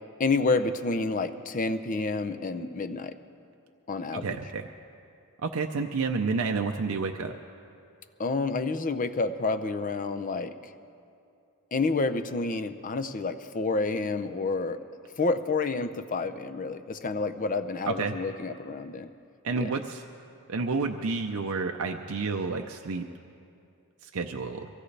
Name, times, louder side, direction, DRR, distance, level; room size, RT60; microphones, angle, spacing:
voice 1, 0.2-3.2 3.9-4.4 8.2-10.7 11.7-14.8 15.2-19.1 19.5-19.7, left 3 dB, 35° left, 10 dB, 0.6 m, -29 dB
voice 2, 4.1-4.6 5.4-7.3 17.9-18.1 19.4-20.0 20.5-23.1 24.0-24.7, right 4 dB, 70° right, 4 dB, 0.6 m, -30 dB
23.5 x 16.5 x 3.3 m, 2.5 s
head